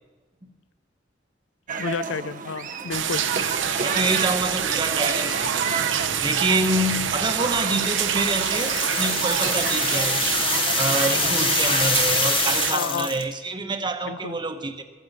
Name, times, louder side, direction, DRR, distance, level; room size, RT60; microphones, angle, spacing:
sound 1, 1.7-11.9, right 5 dB, 45° right, 0.7 m, -32 dB
voice 1, 1.8-3.2 12.7-13.1 14.0-14.4, left 6 dB, 85° left, 17 dB, 0.4 m, -30 dB
sound 2, 2.9-12.7, right 8 dB, 75° right, 0.9 m, -26 dB
voice 2, 3.8-5.7 6.2-10.2 10.8-14.8, right 2 dB, 25° right, 7 dB, 1.0 m, -27 dB
sound 3, 7.7-13.3, left 6 dB, 30° left, 0.9 m, -26 dB
15.0 x 9.2 x 7.3 m, 1.3 s
head